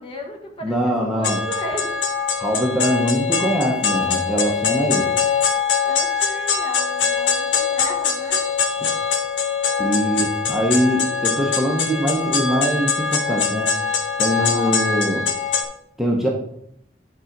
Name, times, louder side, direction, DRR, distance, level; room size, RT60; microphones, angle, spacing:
voice 1, 0.0-1.9 5.8-8.4 14.4-14.9, equal, 30° left, 2 dB, 1.4 m, -34 dB
voice 2, 0.6-1.4 2.4-5.1 9.8-13.7 14.2-15.2 16.0-16.3, equal, ahead, -2 dB, 1.0 m, -22 dB
sound 1, 1.2-15.6, left 6 dB, 90° left, 1.2 m, -22 dB
9.9 x 3.8 x 5.9 m, 0.75 s
head